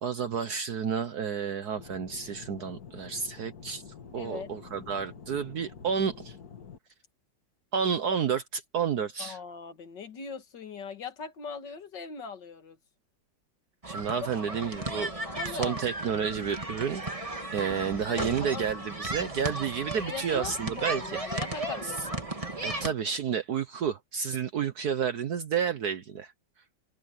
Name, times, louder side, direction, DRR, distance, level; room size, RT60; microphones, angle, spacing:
voice 1, 0.0-3.8 4.1-6.3 7.7-9.4 13.9-15.1 15.5-21.2 21.8-21.9 22.6-26.3, right 7 dB, 60° right, 1.5 m, -30 dB
Aircraft / Engine, 1.8-6.8, left 6 dB, 55° left, 2.3 m, -47 dB
voice 2, 4.1-4.5 9.2-12.8 15.0-15.8 18.2-18.7 20.1-22.2, left 5 dB, 70° left, 2.4 m, -40 dB
sound 1, 13.8-22.9, right 2 dB, 20° right, 2.1 m, -35 dB
open air
omnidirectional pair, 2.0 m